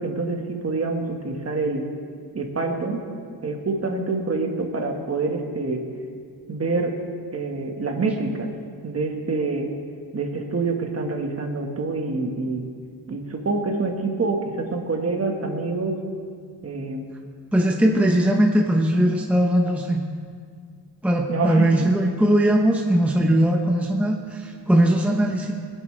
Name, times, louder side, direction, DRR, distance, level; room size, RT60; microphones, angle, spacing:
voice 1, 0.0-1.8 2.3-3.0 3.4-5.8 6.5-7.0 7.3-8.5 8.8-9.7 10.1-12.7 13.1-16.0 16.6-17.1 21.3-21.9, right 3 dB, 35° right, 3 dB, 1.6 m, -26 dB
voice 2, 17.5-20.0 21.0-25.5, right 1 dB, 5° right, 1 dB, 0.8 m, -20 dB
20.0 x 10.5 x 3.3 m, 2.1 s
cardioid pair, 120°, 42 cm